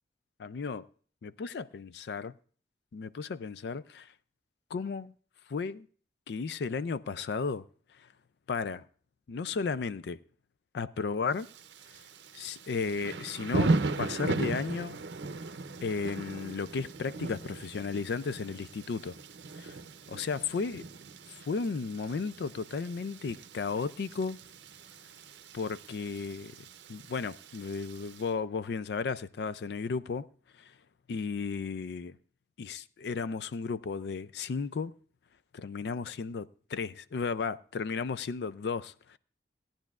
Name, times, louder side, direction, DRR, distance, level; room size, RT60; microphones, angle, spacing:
voice 1, 0.4-0.9 1.2-2.3 2.9-4.1 4.7-5.1 5.5-5.9 6.3-7.6 8.5-8.8 9.3-10.2 10.7-11.5 12.3-15.0 15.8-19.2 19.5-19.8 20.1-20.8 21.4-24.4 25.5-26.5 26.9-30.3 30.6-30.7 31.1-32.1 32.6-34.9 35.5-39.2, left 5 dB, 70° left, 0.4 m, -34 dB
Thunder / Rain, 11.4-28.2, right 3 dB, 85° right, 0.6 m, -37 dB
17.5 x 10.0 x 2.4 m
head